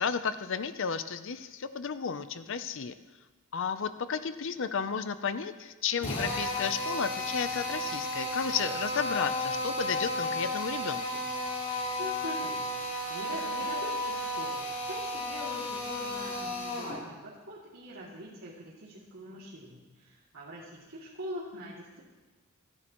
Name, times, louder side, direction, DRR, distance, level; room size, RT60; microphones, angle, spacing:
voice 1, 0.0-2.9 3.5-11.2, left 6 dB, 65° left, 11 dB, 0.6 m, -33 dB
Drill, 6.0-17.0, left 1 dB, 30° left, 4.2 m, -33 dB
voice 2, 12.0-22.0, right 1 dB, 75° right, -8 dB, 2.7 m, -43 dB
28.0 x 10.5 x 3.1 m, 1.2 s
head